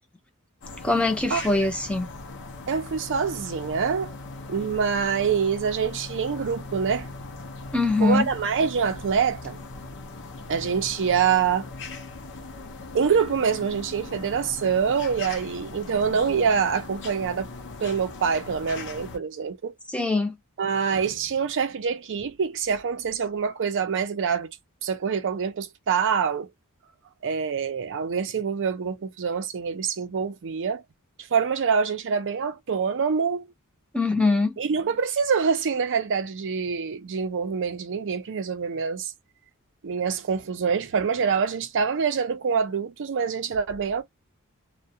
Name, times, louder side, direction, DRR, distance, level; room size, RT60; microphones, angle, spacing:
sound 1, 0.6-19.2, left 3 dB, 55° left, 0.6 m, -39 dB
voice 1, 0.8-2.1 7.7-8.3 19.9-20.3 33.9-34.6, left 3 dB, 5° left, 0.6 m, -22 dB
voice 2, 2.7-4.1 4.5-7.1 8.0-9.6 10.5-11.7 12.9-17.5 17.8-19.7 20.6-24.5 24.8-26.5 27.2-30.8 31.3-33.5 34.6-39.1 39.8-44.0, right 6 dB, 55° right, 0.5 m, -25 dB
2.3 x 2.1 x 2.7 m
head